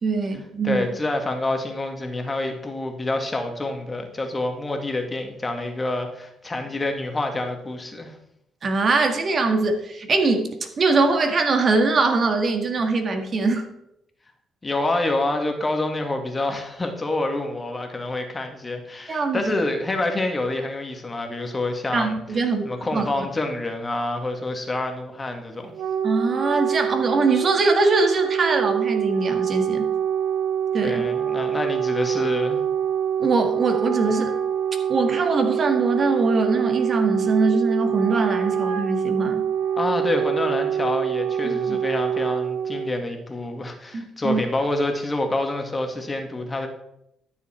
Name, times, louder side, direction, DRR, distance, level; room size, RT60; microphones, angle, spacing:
voice 1, 0.0-0.8 8.6-13.7 19.1-19.4 21.9-22.7 22.9-23.2 26.0-29.9 30.7-31.0 33.2-34.4 34.9-39.4 41.4-41.8 43.9-44.4, right 3 dB, 45° right, 5 dB, 1.8 m, -22 dB
voice 2, 0.6-8.2 14.6-25.7 30.8-32.6 39.8-46.7, left 2 dB, 25° left, 4 dB, 1.8 m, -27 dB
Wind instrument woodwind instrument, 25.5-43.0, right 9 dB, 85° right, 1.2 m, -25 dB
12.5 x 7.0 x 4.4 m, 0.79 s
cardioid pair, 90°, 0 cm